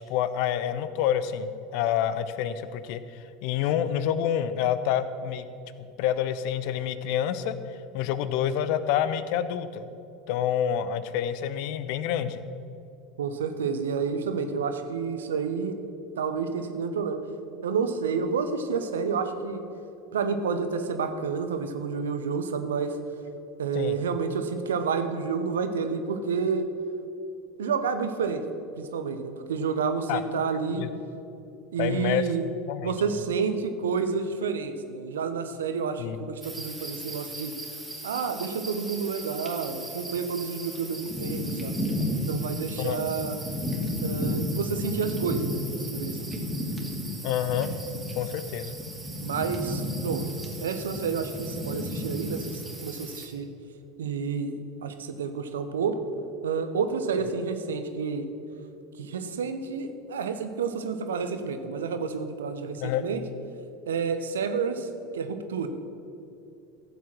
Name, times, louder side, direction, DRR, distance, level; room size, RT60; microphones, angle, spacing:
voice 1, 0.1-5.5 5.8-7.5 7.9-9.9 10.3-12.4 23.7-24.0 30.1-30.2 30.8-30.9 31.8-32.3 32.7-32.9 36.0-36.2 42.8-43.0 47.2-47.7 48.2-48.8 62.8-63.1, left 10 dB, 55° left, 13 dB, 0.6 m, -28 dB
voice 2, 13.2-15.8 16.2-17.2 17.6-19.6 20.1-23.0 23.6-26.6 27.6-28.4 28.8-30.9 31.7-32.5 32.8-37.5 38.0-41.8 42.3-43.4 44.0-46.4 49.2-50.3 50.6-53.5 54.0-56.0 56.4-58.3 59.0-63.2 63.9-64.9 65.1-65.7, right 5 dB, 75° right, 8 dB, 0.9 m, -29 dB
sound 1, 36.4-53.3, equal, 10° right, 2.6 m, -33 dB
15.0 x 7.3 x 6.1 m, 2.7 s
figure-of-eight pair, 75°, 0 cm